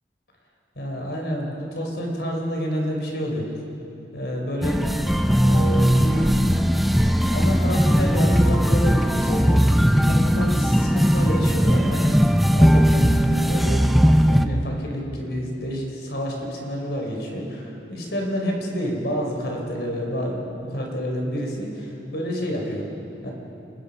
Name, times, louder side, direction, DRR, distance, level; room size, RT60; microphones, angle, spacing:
voice 1, 0.7-3.5 4.1-5.1 5.4-6.5 7.0-22.9 23.2-23.3, equal, 65° left, 0 dB, 4.8 m, -29 dB
sound 1, 4.6-14.5, equal, ahead, 0.7 m, -18 dB
29.5 x 20.0 x 5.6 m, 2.8 s
head